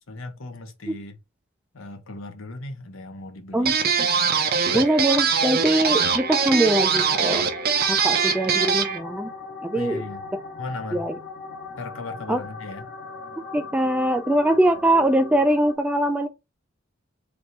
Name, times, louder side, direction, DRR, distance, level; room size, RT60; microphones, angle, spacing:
voice 1, 0.1-1.2 1.7-3.7 4.7-4.8 9.7-10.3 10.6-11.1 11.8-12.9, left 2 dB, 80° left, 0.8 m, -37 dB
sound 1, 3.7-9.0, right 6 dB, 50° right, 0.6 m, -22 dB
voice 2, 4.7-7.5 7.9-9.3 9.6-10.0 10.9-11.1 12.3-12.4 13.5-16.3, right 1 dB, 5° right, 0.3 m, -22 dB
sound 2, 6.2-15.7, left 4 dB, 45° left, 0.7 m, -39 dB
3.4 x 2.6 x 4.2 m
head